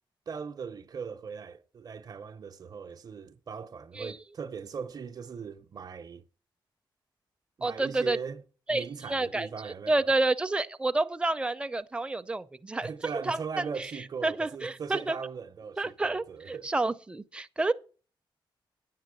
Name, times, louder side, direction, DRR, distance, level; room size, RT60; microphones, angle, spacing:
voice 1, 0.3-6.2 7.6-8.4 8.7-10.1 12.8-16.7, right 6 dB, 45° right, 0.7 m, -39 dB
voice 2, 7.6-8.2 8.7-12.9 13.2-13.9 14.2-15.2 15.8-17.7, right 2 dB, 10° right, 0.5 m, -29 dB
10.0 x 7.5 x 6.2 m
wide cardioid pair, 125°, 9 cm